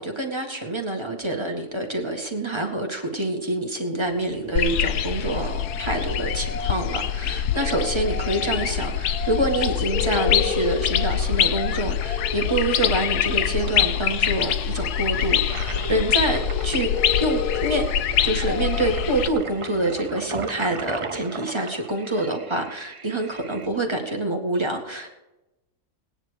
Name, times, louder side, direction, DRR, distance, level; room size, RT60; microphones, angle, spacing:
voice 1, 0.0-16.9 17.2-17.8 18.2-25.1, right 1 dB, 15° right, 2 dB, 1.9 m, -26 dB
sound 1, 3.9-20.5, left 1 dB, 60° left, 6.1 m, -50 dB
sound 2, 4.6-19.3, left 9 dB, 80° left, 1.3 m, -24 dB
Toilet flush, 14.6-23.7, right 4 dB, 45° right, 0.4 m, -37 dB
19.0 x 9.9 x 4.9 m, 0.99 s
omnidirectional pair, 1.7 m